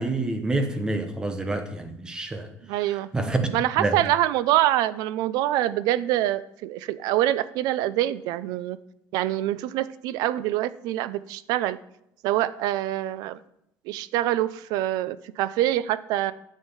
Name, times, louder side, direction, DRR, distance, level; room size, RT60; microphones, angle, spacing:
voice 1, 0.0-2.5 3.1-3.5 3.8-3.9, right 2 dB, 10° right, 7 dB, 0.9 m, -27 dB
voice 2, 2.7-3.1 3.5-8.8 9.1-11.8 12.2-13.4 13.9-16.3, right 14 dB, 85° right, 16 dB, 0.5 m, -25 dB
9.7 x 6.5 x 5.5 m, 0.78 s
cardioid pair, 175°, 7 cm